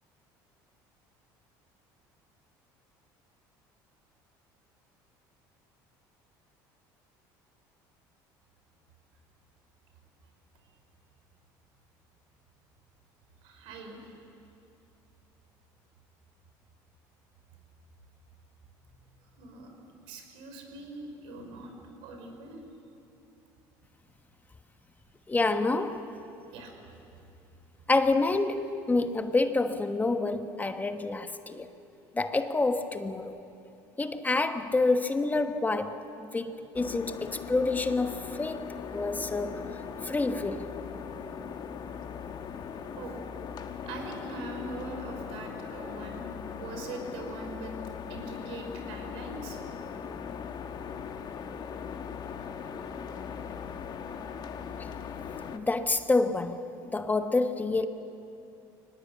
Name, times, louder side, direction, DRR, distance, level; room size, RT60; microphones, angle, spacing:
voice 1, 13.4-14.0 19.4-19.7 20.1-21.7 22.0-22.6 26.5-26.7 43.0-43.2 43.8-46.2 46.6-47.7 48.1-49.6, right 2 dB, 75° right, 5.5 m, -42 dB
voice 2, 25.3-26.1 27.9-31.7 32.1-33.4 34.0-39.7 40.0-40.6 55.5-56.6 56.9-57.9, left 3 dB, 15° left, 1.2 m, -28 dB
sound 1, 36.7-55.6, left 7 dB, 50° left, 1.7 m, -39 dB
23.5 x 19.0 x 8.7 m
supercardioid pair, 90°, 10 cm